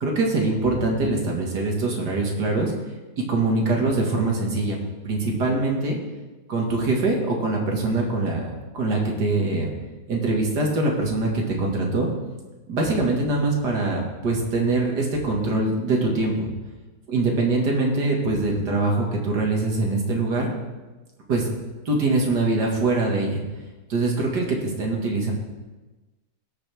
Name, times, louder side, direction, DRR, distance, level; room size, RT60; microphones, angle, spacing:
voice 1, 0.0-2.7 3.2-4.8 5.0-6.0 6.5-8.5 8.7-9.7 10.1-12.1 12.7-16.5 17.1-20.5 21.3-21.5 21.9-23.4 23.9-25.3, right 2 dB, 80° right, -1 dB, 2.5 m, -23 dB
18.5 x 6.6 x 3.5 m, 1.2 s
omnidirectional pair, 1.7 m